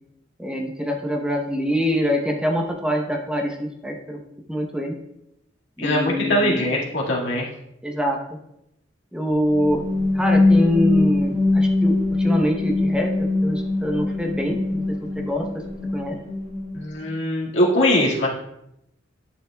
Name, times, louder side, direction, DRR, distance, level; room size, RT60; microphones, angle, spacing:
voice 1, 0.4-4.2 4.5-5.0 5.8-6.7 7.8-8.2 9.1-9.8 10.1-15.6 15.9-16.2, equal, 5° right, 1 dB, 0.8 m, -25 dB
voice 2, 5.8-7.5 16.7-18.3, left 1 dB, 65° left, -4 dB, 2.0 m, -21 dB
sound 1, 9.3-17.1, left 2 dB, 35° left, 2.3 m, -22 dB
11.5 x 7.2 x 2.3 m, 0.80 s
head